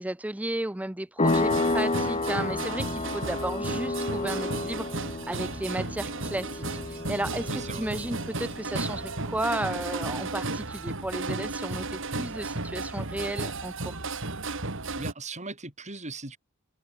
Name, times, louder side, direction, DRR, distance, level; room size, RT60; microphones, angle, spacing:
voice 1, 0.0-14.0, right 1 dB, 5° right, 0.6 m, -34 dB
sound 1, 1.2-9.5, left 2 dB, 30° left, 1.6 m, -31 dB
sound 2, 1.2-15.1, right 3 dB, 65° right, 3.6 m, -34 dB
voice 2, 7.5-7.9 15.0-16.4, right 3 dB, 35° right, 7.2 m, -39 dB
head